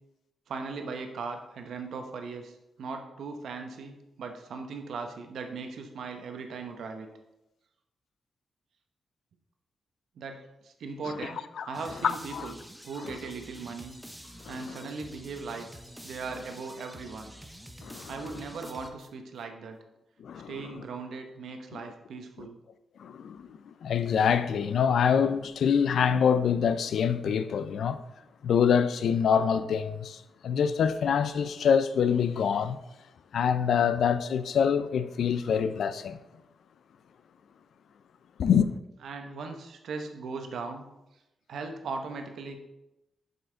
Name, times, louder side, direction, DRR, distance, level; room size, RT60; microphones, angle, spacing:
voice 1, 0.5-7.1 10.2-11.4 11.7-12.5 12.8-13.9 14.5-17.3 18.1-19.8 20.5-22.6 39.0-40.9 41.5-42.6, right 4 dB, 80° right, 0.8 m, -38 dB
voice 2, 11.2-11.7 12.3-12.5 14.4-14.8 17.8-18.1 20.2-20.7 21.7-21.8 22.4-22.5 23.0-28.0 28.4-32.8 33.3-36.2 38.4-38.7, left 7 dB, 75° left, 0.4 m, -26 dB
sound 1, 11.7-19.4, equal, 5° right, 0.6 m, -48 dB
7.5 x 5.5 x 3.8 m
wide cardioid pair, 125°, 0 cm